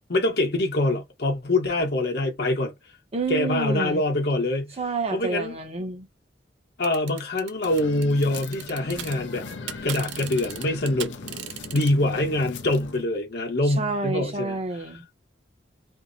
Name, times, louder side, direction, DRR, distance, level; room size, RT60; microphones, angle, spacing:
voice 1, 0.1-2.7 3.3-4.7 5.1-5.6 6.8-9.5 9.8-11.1 11.7-14.6, left 1 dB, 60° left, 0.9 m, -24 dB
voice 2, 3.1-4.0 4.8-6.1 13.7-15.0, right 3 dB, 35° right, 0.7 m, -29 dB
sound 1, 6.8-9.2 9.4-11.9, right 11 dB, 85° right, 0.4 m, -36 dB
sound 2, 7.6-13.0, left 4 dB, 80° left, 0.5 m, -39 dB
2.6 x 2.0 x 2.5 m
head